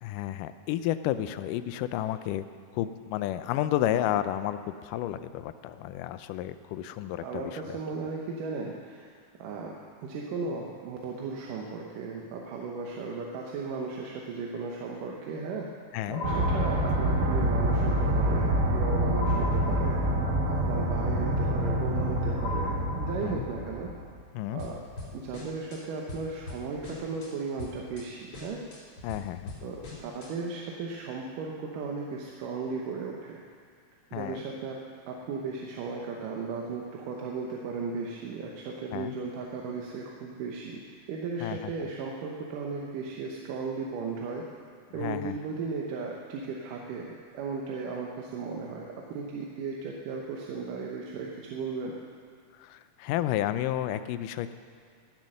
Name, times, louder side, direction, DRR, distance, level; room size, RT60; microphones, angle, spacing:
voice 1, 0.0-2.4 2.7-7.2 7.7-7.8 15.9-16.2 23.2-23.4 24.3-24.6 29.0-29.5 34.1-34.4 38.9-39.1 41.4-41.6 45.0-45.3 52.7-54.5, left 12 dB, 85° left, 12 dB, 2.2 m, -31 dB
voice 2, 7.2-9.8 10.0-15.7 16.1-20.0 20.5-23.9 24.5-24.9 25.1-28.6 29.6-33.4 34.1-34.8 35.1-44.4 44.9-51.9, right 4 dB, 85° right, -1 dB, 2.6 m, -36 dB
sound 1, 16.1-17.4 19.1-20.4 22.4-23.6, left 2 dB, 65° left, 1.0 m, -38 dB
sound 2, 16.2-24.0, right 1 dB, 60° right, 1.0 m, -27 dB
sound 3, 24.6-25.8 26.1-27.3 27.6-28.0 28.3-30.3, left 3 dB, 45° left, 3.8 m, -42 dB
17.5 x 7.5 x 6.5 m, 2.1 s
omnidirectional pair, 3.7 m